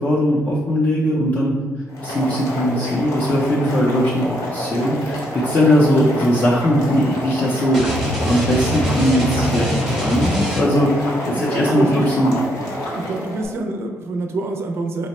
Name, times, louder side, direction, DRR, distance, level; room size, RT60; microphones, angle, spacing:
voice 1, 0.0-1.6 2.0-7.8 8.2-12.4, equal, 30° left, -5 dB, 0.5 m, -19 dB
Boiling, 1.9-13.5, left 1 dB, 80° left, 1.1 m, -28 dB
sound 1, 7.7-10.9, equal, ahead, 0.8 m, -23 dB
voice 2, 11.3-12.1 12.9-15.1, right 2 dB, 50° right, 4 dB, 0.4 m, -26 dB
4.2 x 2.0 x 4.1 m, 1.5 s
cardioid pair, 160°, 5 cm